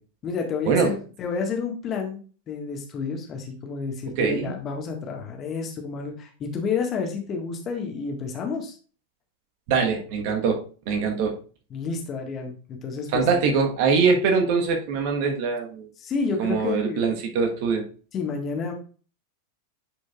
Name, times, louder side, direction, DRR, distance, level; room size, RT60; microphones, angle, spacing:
voice 1, 0.2-2.2 2.5-8.8 11.7-13.4 16.0-17.1 18.1-18.7, left 5 dB, 30° left, 2 dB, 1.7 m, -30 dB
voice 2, 4.2-4.5 9.7-11.4 13.1-15.9 16.4-17.9, right 5 dB, 45° right, 3 dB, 1.3 m, -23 dB
10.5 x 5.0 x 2.4 m, 0.38 s
figure-of-eight pair, 90°, 0 cm